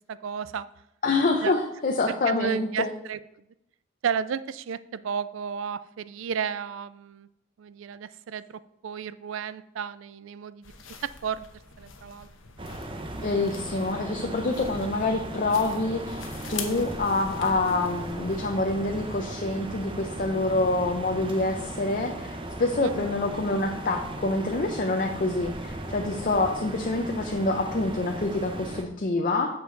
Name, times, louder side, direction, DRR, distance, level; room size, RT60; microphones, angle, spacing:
voice 1, 0.1-0.7 1.4-1.5 2.1-3.2 4.0-7.3 7.6-10.7 11.0-11.5 11.8-12.3 22.8-23.2, right 7 dB, 65° right, 16 dB, 0.3 m, -33 dB
voice 2, 1.0-2.9 13.2-16.2 16.5-29.5, left 2 dB, 40° left, 2 dB, 0.6 m, -26 dB
sound 1, 10.6-19.3, left 6 dB, 70° left, 1.0 m, -44 dB
sound 2, 12.6-28.8, right 1 dB, 25° right, 0.8 m, -37 dB
7.7 x 6.9 x 3.9 m, 0.82 s
head